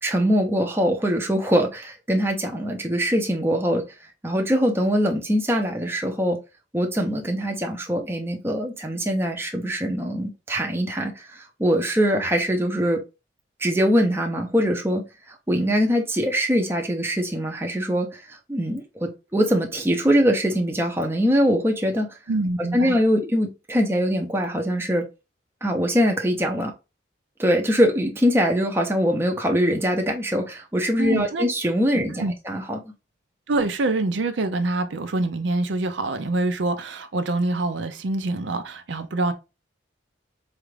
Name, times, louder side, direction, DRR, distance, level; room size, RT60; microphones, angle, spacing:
voice 1, 0.0-3.8 4.2-6.4 6.7-13.0 13.6-22.2 22.7-25.1 25.6-26.7 27.4-32.9, equal, 10° right, 0.6 m, -23 dB
voice 2, 22.3-22.9 31.0-31.4 32.2-32.3 33.5-39.3, right 2 dB, 70° right, 0.5 m, -25 dB
4.2 x 2.4 x 3.2 m
head